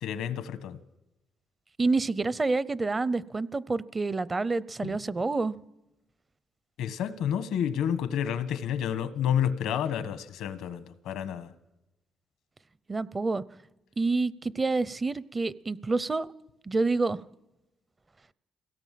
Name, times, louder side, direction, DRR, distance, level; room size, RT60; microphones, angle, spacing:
voice 1, 0.0-0.8 4.8-5.0 6.8-11.5, left 9 dB, 85° left, 12 dB, 1.3 m, -30 dB
voice 2, 1.8-5.6 12.9-13.4 14.0-16.3 16.7-17.2, right 3 dB, 25° right, 19 dB, 0.7 m, -28 dB
23.5 x 17.5 x 7.6 m, 0.97 s
cardioid pair, 90°, 0 cm